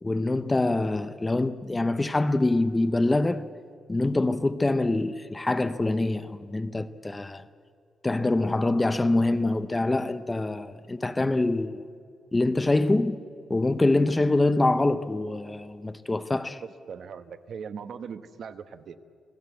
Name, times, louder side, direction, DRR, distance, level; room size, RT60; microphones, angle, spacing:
voice 1, 0.0-3.5 3.9-7.4 8.0-11.8 12.3-13.2 13.5-16.6, left 2 dB, 15° left, 0.6 m, -25 dB
voice 2, 16.6-19.0, right 6 dB, 50° right, 1.1 m, -40 dB
28.5 x 18.0 x 8.1 m
wide cardioid pair, 175°, 0 cm